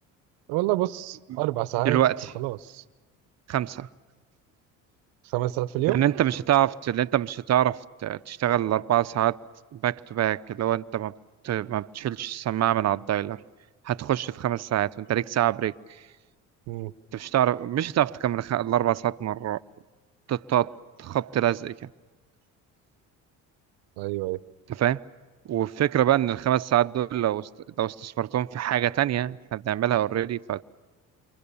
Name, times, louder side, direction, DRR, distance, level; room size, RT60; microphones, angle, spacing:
voice 1, 0.5-2.0 2.3-2.8 5.3-6.0 16.7-16.9 24.0-24.4, right 17 dB, 80° right, 1.0 m, -27 dB
voice 2, 1.8-2.3 3.5-3.9 5.9-9.4 9.7-11.2 11.4-13.4 13.8-15.7 17.1-19.6 20.3-21.7 24.7-25.0 25.5-27.5 27.8-30.6, right 12 dB, 50° right, 0.9 m, -25 dB
29.0 x 24.5 x 7.1 m
supercardioid pair, 80°, 35 cm